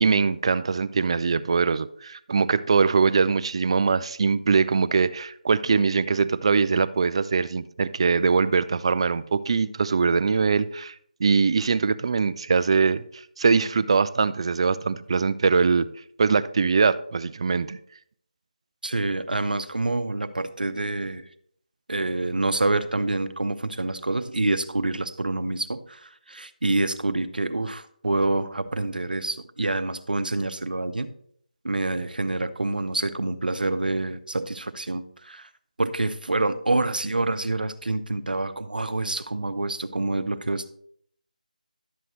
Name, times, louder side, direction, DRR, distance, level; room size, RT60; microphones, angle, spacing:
voice 1, 0.0-10.9 11.2-15.9 16.2-17.8, right 5 dB, 40° right, 0.4 m, -22 dB
voice 2, 18.8-21.3 21.9-31.1 31.6-35.5 35.8-40.7, right 2 dB, 80° right, 0.8 m, -27 dB
11.0 x 7.7 x 3.1 m
figure-of-eight pair, 160°, 5 cm